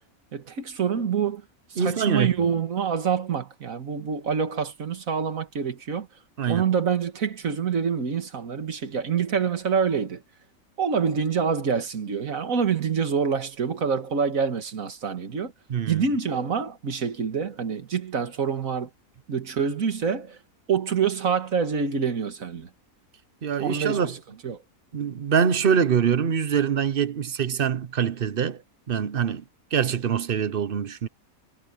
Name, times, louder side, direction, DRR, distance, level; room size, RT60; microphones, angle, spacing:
voice 1, 0.3-1.4 1.7-6.1 6.5-10.2 10.8-15.5 15.9-18.9 19.3-20.4 20.7-22.7 23.6-24.2 24.4-24.6, right 6 dB, 65° right, 2.1 m, -26 dB
voice 2, 1.8-2.3 6.4-6.6 15.7-16.0 23.4-24.1 24.9-28.6 28.9-29.4 29.7-31.1, right 7 dB, 45° right, 0.9 m, -24 dB
omnidirectional pair, 1.5 m